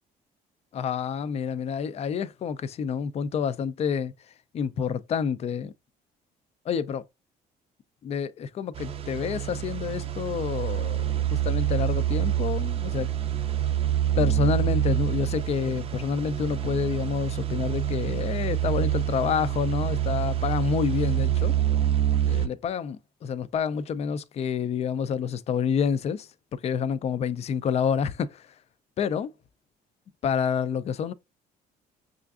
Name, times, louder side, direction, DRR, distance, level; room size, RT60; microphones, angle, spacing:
voice 1, 0.7-4.1 4.5-5.7 6.7-7.0 8.0-13.1 14.2-21.6 22.2-28.5 29.0-29.3 30.2-31.1, left 7 dB, 40° left, 0.4 m, -28 dB
sound 1, 8.7-22.5, right 11 dB, 35° right, 0.4 m, -27 dB
5.5 x 2.5 x 2.4 m
cardioid pair, 110°, 17 cm